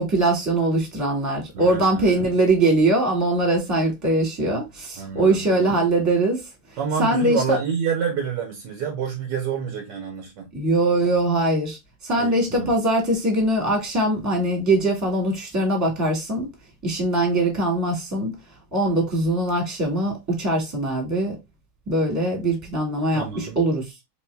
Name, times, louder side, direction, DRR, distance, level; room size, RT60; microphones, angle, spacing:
voice 1, 0.0-6.4 7.0-7.6 10.5-11.8 12.0-16.5 16.8-18.3 18.7-21.3 21.9-23.9, right 2 dB, 10° right, 1.3 m, -22 dB
voice 2, 1.5-2.3 5.0-5.7 6.8-10.5 12.2-12.7 23.1-23.6, right 6 dB, 70° right, 1.2 m, -28 dB
3.5 x 3.0 x 3.2 m
omnidirectional pair, 2.2 m